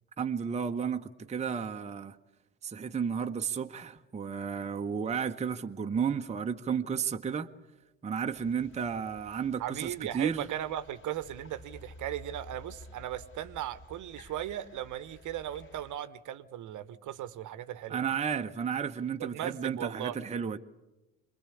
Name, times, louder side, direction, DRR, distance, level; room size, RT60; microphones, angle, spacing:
voice 1, 0.2-2.2 2.6-7.5 8.0-10.5 17.9-20.6, right 7 dB, 15° right, 0.9 m, -33 dB
sound 1, 8.3-16.0, left 1 dB, 30° left, 3.3 m, -52 dB
voice 2, 9.6-18.1 19.2-20.2, right 11 dB, 45° right, 1.1 m, -37 dB
27.0 x 21.0 x 8.5 m
figure-of-eight pair, 65°, 43 cm